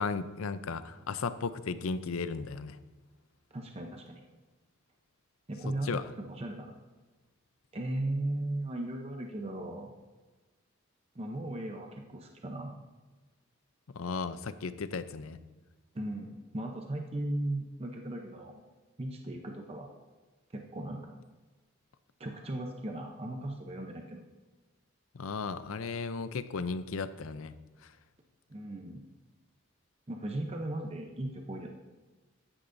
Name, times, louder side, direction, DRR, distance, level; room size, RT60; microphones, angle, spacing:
voice 1, 0.0-2.8 5.8-6.0 13.9-15.4 25.1-27.5, left 4 dB, 90° left, 13 dB, 0.5 m, -35 dB
voice 2, 3.5-4.2 5.5-6.8 7.7-9.9 11.1-12.7 15.9-18.5 19.0-19.9 20.5-21.1 22.2-24.2 28.5-29.0 30.1-31.7, right 1 dB, 30° right, 2 dB, 0.7 m, -37 dB
13.5 x 9.9 x 2.6 m, 1.3 s
head